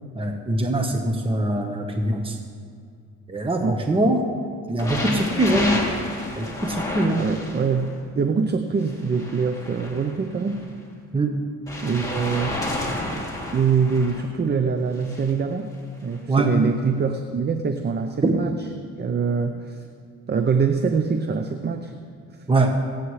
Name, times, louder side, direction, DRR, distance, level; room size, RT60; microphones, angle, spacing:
voice 1, 0.1-2.4 3.3-4.3 4.7-5.8 6.3-7.3 11.1-11.4 16.3-16.5 18.2-18.3 22.5-22.8, right 2 dB, 20° right, 3 dB, 1.2 m, -22 dB
sound 1, 4.8-7.9 8.8-10.6 11.7-14.2 15.0-15.3 16.1-16.2, left 1 dB, 10° left, 2.8 m, -30 dB
voice 2, 7.2-10.7 11.8-12.6 13.5-15.7 16.0-18.5 19.0-19.9 20.3-21.9, right 5 dB, 35° right, 7 dB, 0.7 m, -24 dB
25.5 x 8.7 x 3.3 m, 2.2 s
cardioid pair, 90°, 30 cm